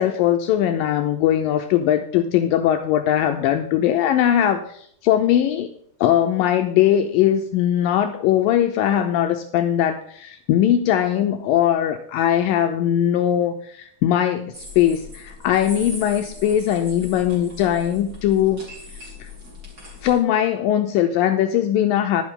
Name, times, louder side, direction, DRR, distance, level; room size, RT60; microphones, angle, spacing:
voice 1, 0.0-5.7 6.0-18.6 19.2-19.3 20.0-22.2, left 10 dB, 80° left, 7 dB, 2.1 m, -20 dB
sound 1, 14.5-20.2, left 2 dB, 25° right, 3.4 m, -39 dB
11.0 x 10.5 x 3.7 m, 0.64 s
omnidirectional pair, 4.5 m